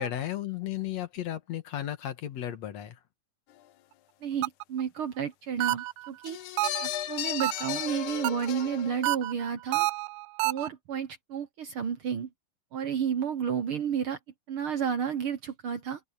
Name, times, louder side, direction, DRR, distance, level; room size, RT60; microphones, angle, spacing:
voice 1, 0.0-3.0, left 12 dB, 65° left, 2.5 m, -34 dB
voice 2, 4.2-6.4 6.8-9.9 10.4-12.3 12.7-14.2 14.5-16.0, right 8 dB, 60° right, 1.5 m, -31 dB
sound 1, 4.4-4.8 5.6-6.1 6.6-7.0 7.4-7.9 8.2-8.6 9.0-10.7, right 19 dB, 85° right, 2.0 m, -29 dB
sound 2, 6.2-9.1, left 13 dB, 85° left, 2.3 m, -35 dB
open air
omnidirectional pair, 3.4 m